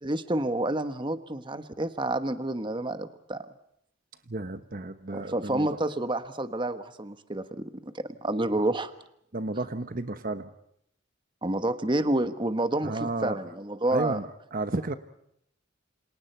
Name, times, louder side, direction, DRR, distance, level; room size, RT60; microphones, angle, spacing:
voice 1, 0.0-3.5 5.1-8.9 11.4-14.2, right 1 dB, 25° right, 10 dB, 1.2 m, -29 dB
voice 2, 4.3-5.7 9.3-10.5 12.8-13.4 13.9-14.9, right 2 dB, 45° right, 10 dB, 1.1 m, -32 dB
28.5 x 27.0 x 4.5 m, 0.74 s
head